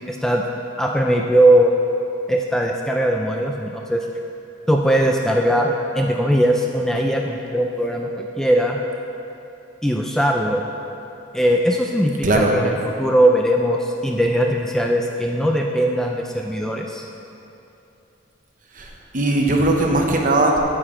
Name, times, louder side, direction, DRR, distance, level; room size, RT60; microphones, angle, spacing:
voice 1, 0.1-0.4 0.8-1.7 2.3-4.1 4.7-8.8 9.8-10.7 11.3-17.0, right 1 dB, 5° left, 0 dB, 0.4 m, -19 dB
voice 2, 18.7-20.6, right 2 dB, 45° right, 1 dB, 0.9 m, -19 dB
9.0 x 8.5 x 3.8 m, 2.8 s
head